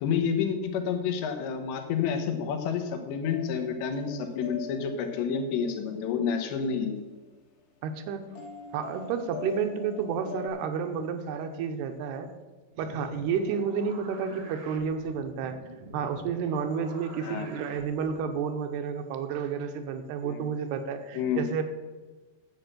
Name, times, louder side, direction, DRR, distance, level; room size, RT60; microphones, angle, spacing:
voice 1, 0.0-7.0 17.2-17.5 20.2-20.4 21.1-21.4, left 6 dB, 90° left, 6 dB, 3.5 m, -29 dB
sound 1, 3.2-7.2 8.4-10.5, left 6 dB, 60° left, 2.6 m, -43 dB
voice 2, 7.8-8.3 8.7-12.3 12.8-15.6 15.9-21.6, right 6 dB, 80° right, 7 dB, 2.8 m, -31 dB
sound 2, 12.7-18.3, right 2 dB, 60° right, 1.5 m, -47 dB
10.5 x 7.9 x 6.7 m, 1.2 s
omnidirectional pair, 4.9 m